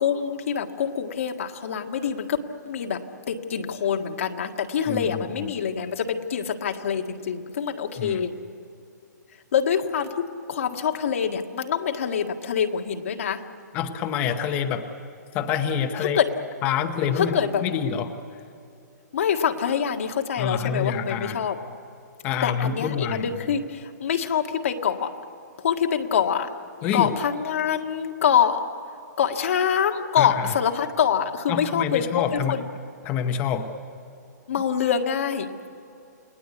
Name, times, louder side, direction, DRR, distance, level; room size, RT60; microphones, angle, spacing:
voice 1, 0.0-2.4 2.6-3.0 3.3-8.3 9.5-13.4 16.1-16.3 17.1-17.7 19.1-21.6 22.4-25.1 25.6-26.5 26.9-28.6 29.2-32.6 34.5-35.5, left 8 dB, 45° left, 4 dB, 1.7 m, -25 dB
voice 2, 4.9-5.5 8.0-8.2 13.7-14.9 15.3-16.2 16.6-18.1 20.4-21.4 22.2-23.4 26.8-27.1 30.2-30.5 31.5-32.6 33.0-33.7, left 8 dB, 15° left, 6 dB, 0.8 m, -27 dB
29.5 x 19.5 x 8.3 m, 2.7 s
hypercardioid pair, 175°, 10 cm